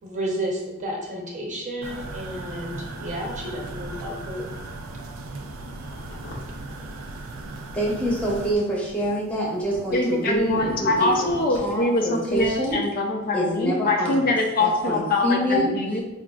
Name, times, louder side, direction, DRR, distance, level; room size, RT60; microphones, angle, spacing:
voice 1, 0.0-4.5, right 1 dB, 35° right, -2 dB, 0.7 m, -32 dB
sound 1, 1.8-8.6, right 2 dB, 70° right, 0.4 m, -37 dB
sound 2, 5.9-6.5 6.8-7.8 8.4-10.0 10.3-11.7 12.3-12.7, left 1 dB, 90° left, 0.8 m, -38 dB
voice 2, 7.7-12.8 13.3-14.3 14.6-15.7, right 1 dB, 5° left, -4 dB, 0.8 m, -26 dB
voice 3, 9.9-16.0, left 2 dB, 45° left, 2 dB, 0.4 m, -23 dB
4.9 x 2.4 x 2.3 m, 0.98 s
head